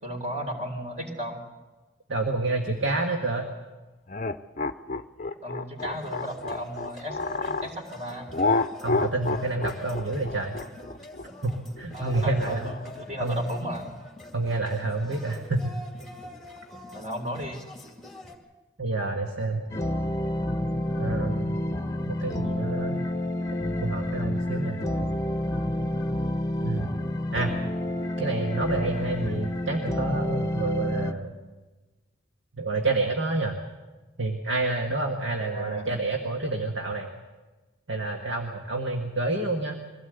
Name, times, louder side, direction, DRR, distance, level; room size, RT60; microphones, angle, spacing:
voice 1, 0.0-1.4 5.4-8.3 11.9-13.9 16.9-17.6 35.5-36.0, equal, 35° right, 3 dB, 3.6 m, -35 dB
voice 2, 2.1-3.5 8.8-10.5 11.4-12.7 13.2-13.5 14.3-15.7 18.8-19.6 21.0-21.6 22.1-23.0 23.8-25.1 26.6-26.9 27.3-27.6 28.2-31.3 32.6-33.6 34.2-37.1 37.9-39.7, right 2 dB, 75° right, 3 dB, 1.8 m, -28 dB
sound 1, 4.1-7.7 8.3-12.8, left 3 dB, 40° left, 0.6 m, -29 dB
sound 2, 5.8-18.4, left 1 dB, ahead, 2.3 m, -45 dB
sound 3, 19.7-31.1, left 1 dB, 15° left, 1.1 m, -29 dB
23.0 x 16.5 x 8.1 m, 1.2 s
head